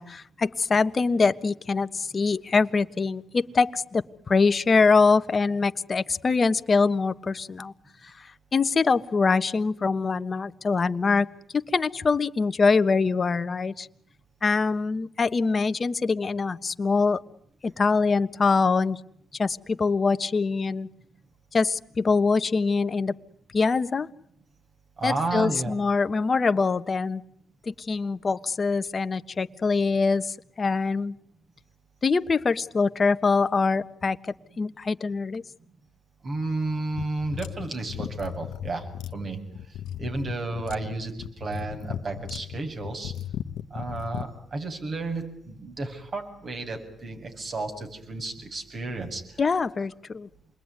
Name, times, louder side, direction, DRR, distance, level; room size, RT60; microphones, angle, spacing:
voice 1, 0.0-7.7 8.0-11.3 11.6-13.9 14.4-17.2 17.6-19.0 19.4-20.9 21.5-23.1 23.5-24.1 25.0-27.2 27.7-31.1 32.0-34.2 34.6-35.4 49.4-50.3, left 4 dB, 40° left, 12 dB, 1.3 m, -24 dB
voice 2, 25.0-25.7 36.2-38.9 39.1-39.4 40.0-43.1 43.7-49.2, right 3 dB, 50° right, 5 dB, 7.1 m, -32 dB
sound 1, 36.9-44.3, left 10 dB, 80° left, 1.1 m, -36 dB
28.0 x 22.0 x 9.6 m, 0.71 s
cardioid pair, 75°, 0 cm